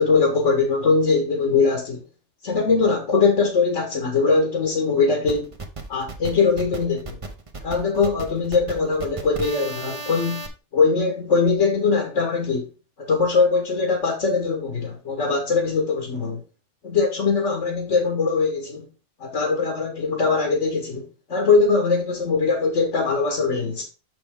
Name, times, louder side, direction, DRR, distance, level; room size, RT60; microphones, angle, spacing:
voice 1, 0.0-2.0 2.4-5.5 5.9-7.2 7.6-10.4 10.7-12.7 13.0-16.4 16.8-18.9 19.2-23.8, left 4 dB, 75° left, 1.7 m, -21 dB
sound 1, 5.3-10.5, right 2 dB, 30° right, 0.8 m, -35 dB
6.2 x 6.1 x 3.5 m
omnidirectional pair, 1.3 m